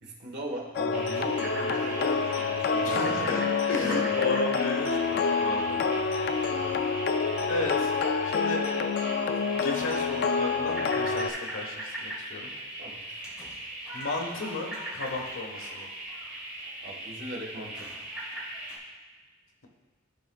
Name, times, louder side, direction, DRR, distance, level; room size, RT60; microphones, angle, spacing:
voice 1, 0.0-3.3 3.7-4.1 12.8-13.1 16.8-17.9, right 1 dB, 55° right, -1 dB, 1.4 m, -39 dB
sound 1, 0.8-11.3, left 5 dB, 50° left, 0.3 m, -27 dB
sound 2, 0.9-18.8, right 1 dB, 5° right, 1.7 m, -39 dB
voice 2, 2.8-3.4 3.7-5.9 7.5-7.9 8.2-8.6 9.4-12.5 13.1-13.2 13.9-15.9, left 2 dB, 85° left, 1 dB, 1.2 m, -34 dB
13.5 x 4.7 x 2.3 m, 1.3 s
head